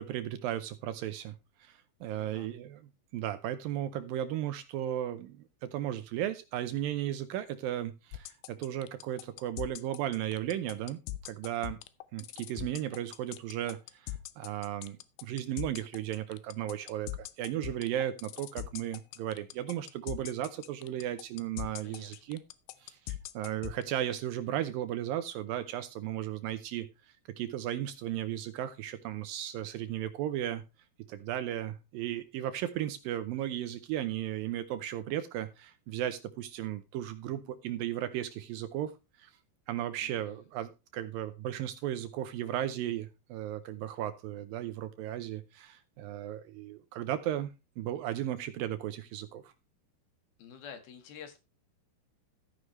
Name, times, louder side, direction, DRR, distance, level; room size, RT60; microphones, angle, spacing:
voice 1, 0.0-1.4 1.6-2.8 3.1-11.0 11.3-11.8 12.1-22.4 22.8-26.9 27.4-30.6 31.1-39.3 39.7-47.5 47.8-49.5, right 12 dB, 75° right, 11 dB, 2.2 m, -35 dB
voice 2, 2.1-2.5 21.8-22.2 40.0-40.5 50.4-51.4, left 7 dB, 70° left, 7 dB, 3.4 m, -49 dB
sound 1, 8.1-23.8, left 15 dB, 85° left, 2.8 m, -40 dB
13.5 x 9.9 x 3.1 m, 0.26 s
omnidirectional pair, 4.6 m